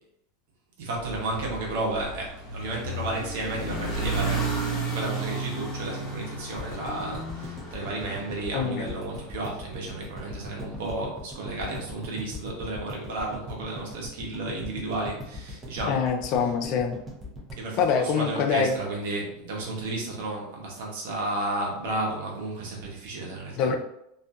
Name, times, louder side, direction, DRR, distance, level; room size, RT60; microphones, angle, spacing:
voice 1, 0.8-4.5 4.9-16.5 17.6-23.8, right 2 dB, 75° right, -1 dB, 0.9 m, -32 dB
sound 1, 1.0-9.3, right 3 dB, 20° left, 1.3 m, -33 dB
sound 2, 6.6-18.7 19.0-19.1 19.3-19.4, left 1 dB, 20° right, 0.8 m, -40 dB
voice 2, 8.5-8.8 15.8-16.9 17.8-18.7 23.6-23.7, left 6 dB, 50° left, 5 dB, 0.4 m, -24 dB
2.6 x 2.5 x 2.3 m, 0.78 s
supercardioid pair, 130°, 0 cm